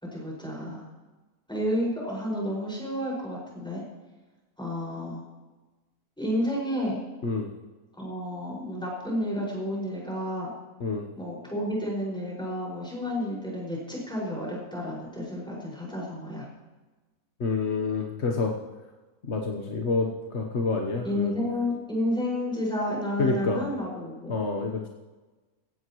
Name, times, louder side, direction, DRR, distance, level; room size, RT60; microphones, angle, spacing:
voice 1, 0.0-0.8 1.5-3.8 4.6-5.2 6.2-7.0 7.9-10.5 11.2-16.5 21.0-24.4, left 1 dB, 5° left, -4 dB, 5.7 m, -31 dB
voice 2, 17.4-18.5 19.2-21.3 23.2-23.6 24.3-24.9, left 3 dB, 50° left, 1 dB, 1.3 m, -28 dB
17.0 x 15.5 x 3.1 m, 1.2 s
omnidirectional pair, 1.5 m